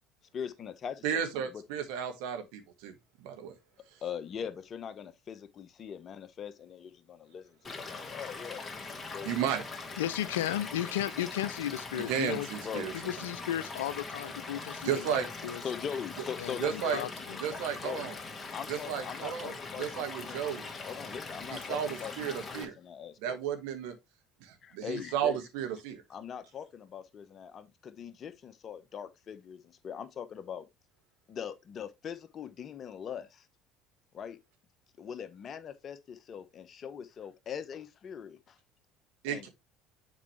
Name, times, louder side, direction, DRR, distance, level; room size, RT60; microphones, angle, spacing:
voice 1, 0.3-1.2 1.5-1.6 4.0-9.4 12.6-13.0 15.6-17.4 17.8-18.1 18.5-20.4 20.8-23.4 24.6-25.4 26.1-30.7 31.3-33.5 34.1-34.4 35.0-38.6 39.3-39.5, left 7 dB, 45° left, 0.9 m, -41 dB
voice 2, 1.0-3.5 9.2-9.6 11.9-12.9 14.8-15.3 16.6-17.0 17.4-18.1 18.7-20.7 21.5-22.7 23.2-23.9 24.4-26.0 39.2-39.5, right 8 dB, 70° right, 1.4 m, -33 dB
Stream / Liquid, 7.6-22.6, left 3 dB, 25° left, 1.9 m, -42 dB
voice 3, 10.0-12.5 13.0-15.6 16.4-17.4, left 12 dB, 80° left, 0.5 m, -34 dB
7.2 x 4.8 x 3.2 m
hypercardioid pair, 70°, 0 cm